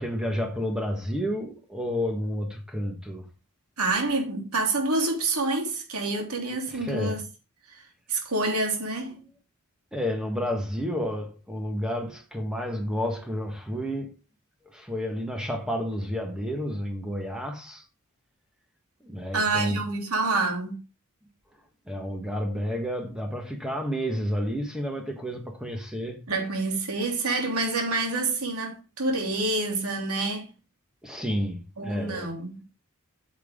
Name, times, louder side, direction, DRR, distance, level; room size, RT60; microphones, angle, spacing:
voice 1, 0.0-3.2 6.7-7.2 9.9-14.1 14.6-17.8 19.0-19.8 21.9-26.2 31.0-32.3, equal, 5° right, 1.5 m, -30 dB
voice 2, 3.8-7.2 7.7-7.8 8.1-9.1 19.3-20.8 26.3-30.5 31.8-32.6, right 2 dB, 85° right, 3.3 m, -27 dB
9.2 x 7.1 x 3.8 m
head